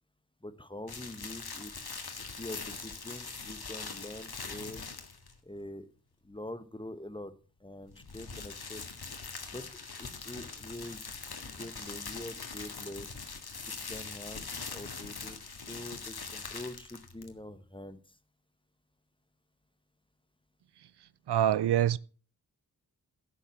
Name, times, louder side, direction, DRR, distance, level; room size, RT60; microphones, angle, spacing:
voice 1, 0.4-1.7 2.4-4.8 5.4-5.9 6.2-7.3 7.6-8.8 9.5-9.6 10.0-11.0 11.4-13.1 13.6-18.0, left 1 dB, 10° left, 1.3 m, -44 dB
sound 1, 0.9-5.4 7.8-17.4, left 4 dB, 70° left, 1.8 m, -42 dB
voice 2, 21.3-22.0, right 11 dB, 80° right, 0.5 m, -25 dB
10.5 x 7.6 x 7.0 m
cardioid pair, 45°, 39 cm